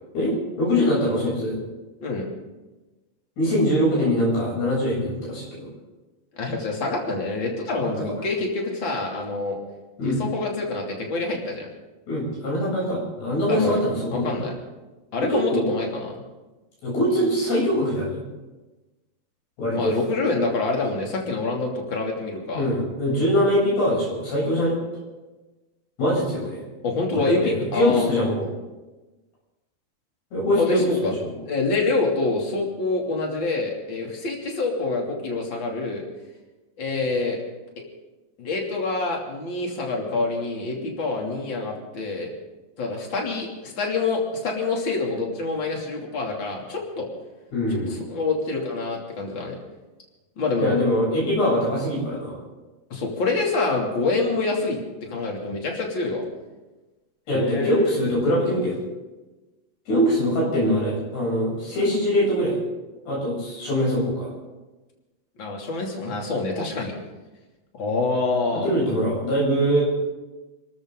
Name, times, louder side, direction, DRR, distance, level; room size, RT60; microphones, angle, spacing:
voice 1, 0.1-1.6 3.4-5.7 7.8-7.9 10.0-10.2 12.1-14.4 15.2-15.7 16.8-18.2 19.6-20.0 22.5-24.8 26.0-26.6 27.1-28.5 30.3-31.3 47.5-47.9 50.6-52.4 57.3-58.8 59.9-62.6 63.1-64.3 68.6-69.8, equal, 80° left, -5 dB, 10.0 m, -23 dB
voice 2, 6.4-9.6 10.0-11.7 13.5-13.8 14.1-14.5 15.1-16.2 19.7-22.6 26.8-28.3 30.6-31.1 31.5-36.0 36.8-37.4 38.4-42.3 42.8-47.1 47.9-49.5 50.4-50.8 52.9-56.2 57.3-58.0 65.4-66.9 67.7-68.6, left 3 dB, 30° left, 0 dB, 3.2 m, -26 dB
27.0 x 13.5 x 3.9 m, 1.1 s
omnidirectional pair, 4.5 m